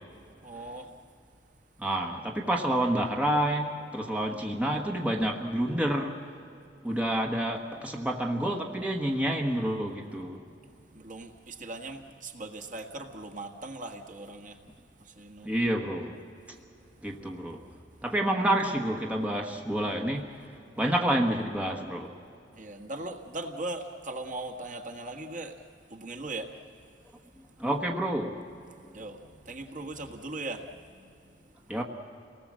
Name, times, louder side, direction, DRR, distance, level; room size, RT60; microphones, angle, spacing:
voice 1, 0.4-0.9 10.9-14.6 15.0-15.5 17.7-17.8 22.5-26.5 27.1-27.2 27.4-27.5 28.6-31.7, right 2 dB, 45° right, 4 dB, 1.6 m, -40 dB
voice 2, 1.8-6.1 6.8-10.4 15.4-16.2 17.0-17.6 18.0-20.3 20.8-22.1 27.6-28.4 31.7-31.8, right 1 dB, 5° right, 1 dB, 1.3 m, -28 dB
28.5 x 19.0 x 7.6 m, 2.5 s
head